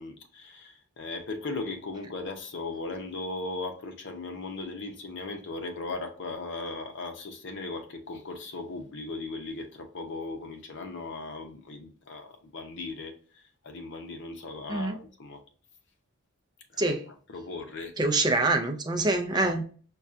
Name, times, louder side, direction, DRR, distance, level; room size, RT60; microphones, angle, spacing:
voice 1, 0.0-13.1 13.6-15.4 16.7-17.9 19.0-19.6, left 3 dB, 55° left, 0.7 m, -38 dB
voice 2, 18.0-19.6, right 2 dB, 20° right, 0.5 m, -25 dB
5.3 x 2.3 x 2.5 m
head